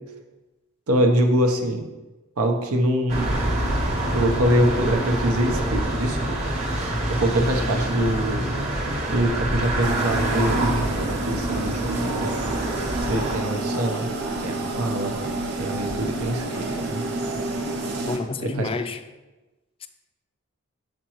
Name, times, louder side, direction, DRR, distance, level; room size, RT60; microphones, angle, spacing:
voice 1, 0.9-1.9 2.4-3.3 4.1-6.2 6.8-8.5 9.1-12.3 13.0-14.1 14.4-15.1 15.6-17.0 18.4-18.7, right 1 dB, 90° right, 0.8 m, -24 dB
sound 1, 3.1-13.4, right 1 dB, 35° right, 1.0 m, -26 dB
sound 2, 9.8-18.2, right 2 dB, 50° right, 0.9 m, -29 dB
voice 2, 18.1-19.0 19.8-19.9, left 3 dB, 25° left, 0.3 m, -29 dB
7.4 x 5.2 x 3.0 m
head